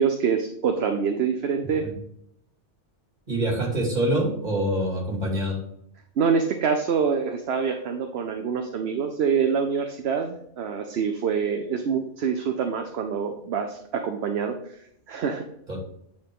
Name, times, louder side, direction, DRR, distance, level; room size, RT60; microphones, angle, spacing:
voice 1, 0.0-1.9 6.2-14.5 15.1-15.4, right 6 dB, 65° right, 5 dB, 0.9 m, -25 dB
voice 2, 3.3-5.6 15.7-15.8, right 1 dB, 35° right, -1 dB, 2.5 m, -25 dB
9.1 x 4.4 x 3.6 m, 0.72 s
omnidirectional pair, 1.2 m